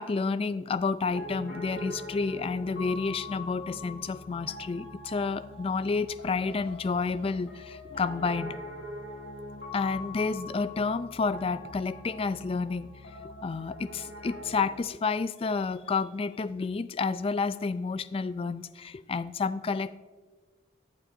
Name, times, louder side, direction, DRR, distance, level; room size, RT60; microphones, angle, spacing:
voice 1, 0.0-8.6 9.7-12.9 13.4-20.0, left 4 dB, 30° left, 14 dB, 0.3 m, -30 dB
Piano, 1.0-14.8, left 1 dB, 90° left, 2.3 m, -42 dB
22.5 x 7.5 x 2.6 m, 1.4 s
head